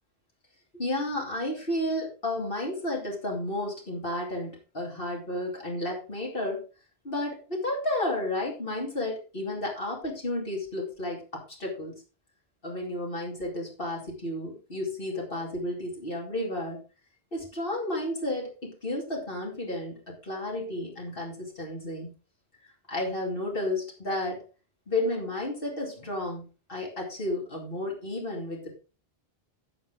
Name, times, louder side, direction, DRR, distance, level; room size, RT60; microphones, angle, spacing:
voice 1, 0.7-6.6 7.0-11.9 12.6-16.8 17.3-22.1 22.9-24.4 24.9-28.7, left 1 dB, 60° left, -2 dB, 2.9 m, -32 dB
16.0 x 5.7 x 3.6 m, 0.33 s
omnidirectional pair, 1.0 m